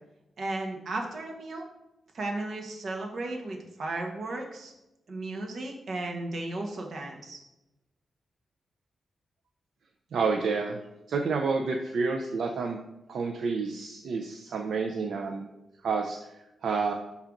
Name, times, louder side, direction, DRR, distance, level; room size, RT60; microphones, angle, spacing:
voice 1, 0.4-1.7 2.1-4.7 5.1-7.4, right 2 dB, 60° right, 1 dB, 1.3 m, -35 dB
voice 2, 10.1-10.8 11.1-12.8 13.1-15.5 15.8-16.3 16.6-16.9, right 4 dB, 80° right, 3 dB, 0.5 m, -29 dB
5.5 x 3.8 x 5.9 m, 0.94 s
wide cardioid pair, 105°, 0 cm